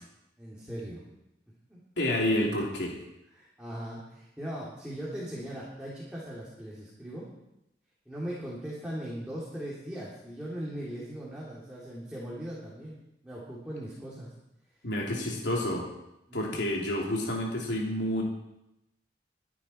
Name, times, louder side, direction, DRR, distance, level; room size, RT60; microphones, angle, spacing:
voice 1, 0.4-1.0 1.7-1.8 3.3-7.3 8.0-13.0 13.2-14.3 15.1-15.7 16.3-16.6, right 1 dB, 5° right, -7 dB, 3.1 m, -39 dB
voice 2, 2.0-3.0 14.8-15.9 16.3-18.2, left 1 dB, 90° left, -2 dB, 3.2 m, -29 dB
24.0 x 10.0 x 4.5 m, 0.88 s
head